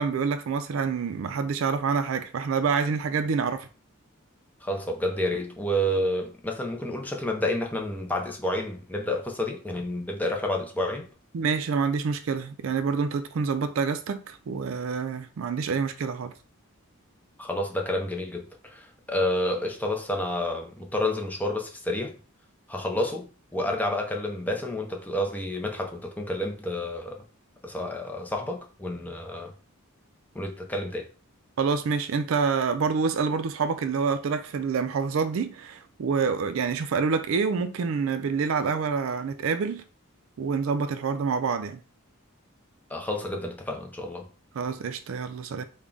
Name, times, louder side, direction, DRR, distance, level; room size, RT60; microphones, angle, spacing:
voice 1, 0.0-3.7 11.3-16.3 31.6-39.8 40.4-41.8 44.5-45.6, right 5 dB, 65° right, 0.4 m, -27 dB
voice 2, 4.6-11.1 17.4-22.2 22.7-27.2 27.6-29.5 30.3-31.1 42.9-44.3, left 1 dB, 10° left, 0.5 m, -29 dB
3.5 x 2.2 x 3.8 m
head